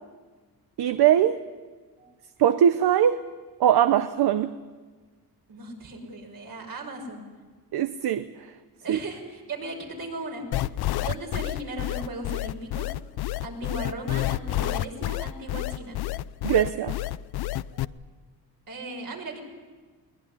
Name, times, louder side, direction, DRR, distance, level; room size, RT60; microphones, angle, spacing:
voice 1, 0.8-1.4 2.4-3.2 3.6-4.5 7.7-8.2 8.9-9.0 16.4-16.9, right 10 dB, 75° right, 11 dB, 0.9 m, -21 dB
voice 2, 5.5-7.2 8.8-10.4 11.0-12.9 13.4-15.9 17.7-18.0 18.7-19.4, right 2 dB, 60° right, 2 dB, 6.1 m, -37 dB
sound 1, 10.5-17.8, left 16 dB, 75° left, 0.7 m, -29 dB
23.0 x 19.0 x 9.9 m, 1.4 s
cardioid pair, 95°, 38 cm